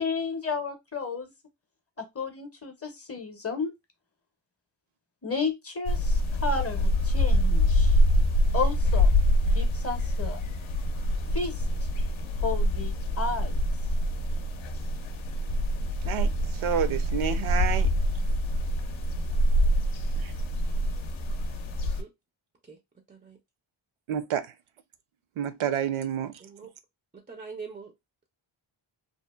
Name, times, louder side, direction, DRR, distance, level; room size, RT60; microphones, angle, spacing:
voice 1, 0.0-1.3 2.0-3.7 5.2-8.0 8.5-9.1 9.5-10.5 11.3-11.6 12.4-13.6, left 4 dB, 30° left, 0.6 m, -32 dB
sound 1, 5.9-22.0, equal, 70° left, 0.6 m, -25 dB
voice 2, 16.6-17.9 20.2-20.3 24.1-24.5 25.4-26.3, right 9 dB, 75° right, 0.6 m, -29 dB
voice 3, 23.1-23.4 26.4-26.7 27.1-27.9, right 5 dB, 20° right, 0.3 m, -43 dB
2.8 x 2.3 x 2.2 m
wide cardioid pair, 130°, 50 cm